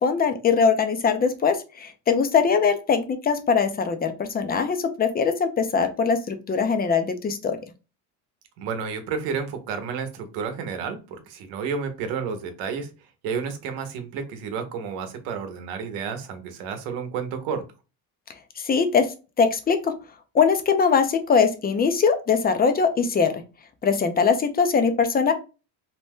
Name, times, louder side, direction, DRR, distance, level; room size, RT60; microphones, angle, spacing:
voice 1, 0.0-7.6 18.6-19.1 19.4-19.9 20.3-23.4 23.8-25.3, left 5 dB, 25° left, 8 dB, 0.4 m, -21 dB
voice 2, 8.6-12.9 13.2-17.6, right 6 dB, 90° right, 7 dB, 0.9 m, -31 dB
2.7 x 2.1 x 3.4 m, 0.31 s
cardioid pair, 115°, 43 cm